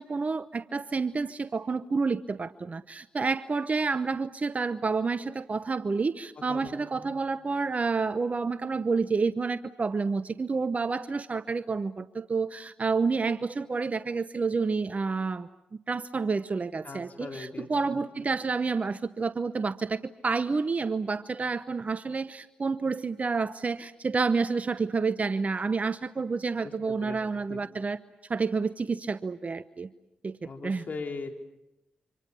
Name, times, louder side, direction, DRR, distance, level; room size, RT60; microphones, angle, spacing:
voice 1, 0.0-15.5 15.9-28.0 28.3-29.9 30.2-30.4 30.6-30.9, right 4 dB, 40° right, 14 dB, 0.9 m, -29 dB
voice 2, 6.5-7.2 16.8-18.0 26.6-27.2 27.5-27.6 30.4-31.3, left 4 dB, 50° left, 3 dB, 4.1 m, -40 dB
27.5 x 26.5 x 7.1 m, 0.91 s
supercardioid pair, 45°, 4 cm